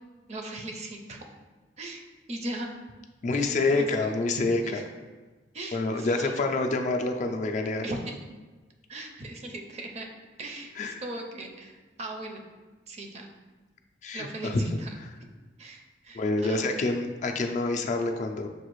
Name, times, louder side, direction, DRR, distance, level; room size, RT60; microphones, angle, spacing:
voice 1, 0.3-1.3 1.8-2.0 2.3-2.7 3.3-4.1 4.6-4.8 5.5-6.3 7.8-8.1 8.9-10.1 10.4-12.4 12.9-13.3 14.1-14.9 15.6-16.6, right 1 dB, 35° right, 2 dB, 0.5 m, -38 dB
voice 2, 3.2-4.8 5.7-7.9 10.8-11.0 14.0-14.6 16.1-18.5, left 3 dB, 40° left, 4 dB, 0.3 m, -27 dB
6.6 x 2.4 x 3.0 m, 1.3 s
head